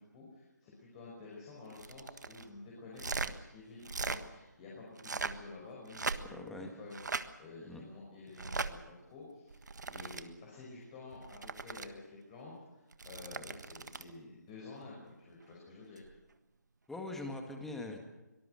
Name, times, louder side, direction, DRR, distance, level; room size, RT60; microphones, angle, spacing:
voice 1, 0.0-7.0 7.4-16.1, left 3 dB, 20° left, -4 dB, 5.4 m, -50 dB
sound 1, 1.7-2.5 2.9-3.3 3.8-4.2 4.9-5.5 5.9-6.5 6.9-7.3 8.3-8.7 9.5-10.2 11.1-11.9 12.9-14.1 16.0-16.1, right 4 dB, 70° right, 1.5 m, -39 dB
voice 2, 6.3-6.7 7.6-7.8 16.9-18.0, left 2 dB, 5° left, 3 dB, 1.9 m, -42 dB
24.0 x 19.0 x 6.5 m, 1.1 s
figure-of-eight pair, 160°, 10 cm